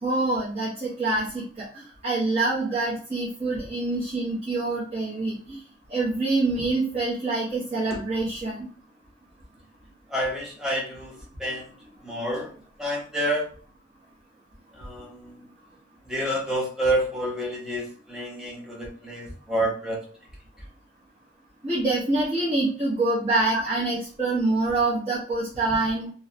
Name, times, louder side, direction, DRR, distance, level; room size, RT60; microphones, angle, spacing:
voice 1, 0.0-5.6 5.9-8.7 21.6-26.1, right 2 dB, 35° right, -8 dB, 0.8 m, -26 dB
voice 2, 10.1-11.1 11.4-11.7 12.0-12.5 12.8-13.5 14.7-15.4 16.1-20.0 23.5-23.6, right 1 dB, 5° right, -3 dB, 0.6 m, -28 dB
2.6 x 2.0 x 2.6 m, 0.42 s
head